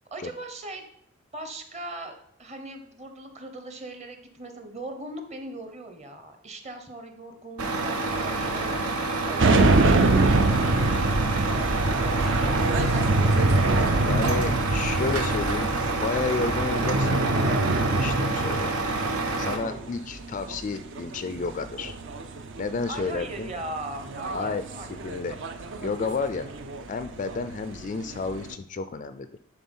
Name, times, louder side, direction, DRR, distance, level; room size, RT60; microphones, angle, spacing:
voice 1, 0.1-0.8 1.3-2.1 2.4-9.0 9.3-13.0 19.6-19.9 22.9-25.0, right 2 dB, 30° right, 5 dB, 1.0 m, -39 dB
Truck, 7.6-19.6, right 3 dB, 85° right, 1.1 m, -28 dB
sound 1, 9.4-28.5, right 2 dB, 55° right, 0.6 m, -25 dB
voice 2, 14.0-15.7 16.0-17.3 18.0-18.7 19.4-21.9 22.6-23.5 24.3-24.6 25.0-25.4 25.8-26.5 26.9-29.4, left 4 dB, 35° left, 11 dB, 0.3 m, -31 dB
10.0 x 4.0 x 5.5 m, 0.71 s
head